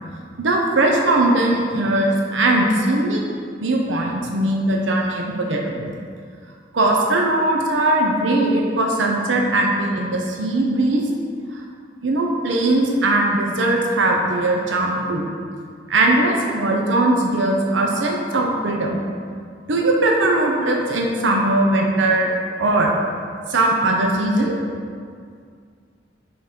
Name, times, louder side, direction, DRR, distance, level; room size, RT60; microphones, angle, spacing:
voice 1, 0.4-3.2 3.6-5.9 6.7-11.0 11.5-11.6 12.0-15.3 15.9-19.0 19.7-22.3 22.6-22.9 23.5-24.6, right 2 dB, 85° right, 0 dB, 0.7 m, -19 dB
5.7 x 4.1 x 5.1 m, 2.1 s
head